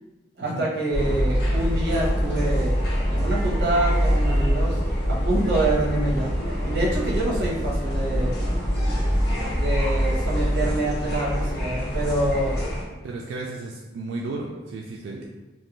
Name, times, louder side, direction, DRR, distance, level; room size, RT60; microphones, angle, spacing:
voice 1, 0.4-2.8 3.1-4.8 5.1-6.3 6.6-8.4 9.5-12.6 15.0-15.2, right 2 dB, 60° right, -5 dB, 0.8 m, -26 dB
sound 1, 0.9-12.8, equal, 60° left, 0.8 m, -24 dB
voice 2, 13.0-15.2, right 3 dB, 90° right, -2 dB, 0.3 m, -34 dB
2.5 x 2.1 x 2.9 m, 1.1 s
head